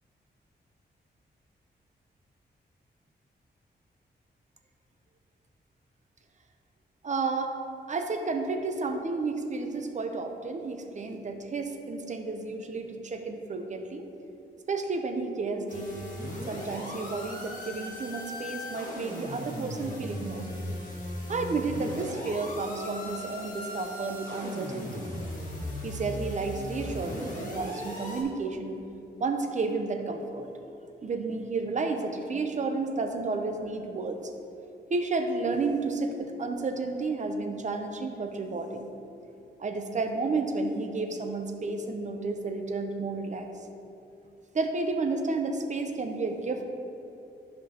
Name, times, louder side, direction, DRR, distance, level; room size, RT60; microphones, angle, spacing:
voice 1, 7.0-7.5 7.9-14.1 14.7-16.0 16.5-20.4 21.3-25.1 25.8-28.8 29.2-30.5 31.0-34.2 34.9-38.9 39.6-43.5 44.5-46.6, right 3 dB, 45° right, 5 dB, 0.7 m, -31 dB
sound 1, 15.7-28.2, left 1 dB, 45° left, 1.8 m, -37 dB
12.5 x 5.4 x 2.9 m, 2.8 s
wide cardioid pair, 120°, 18 cm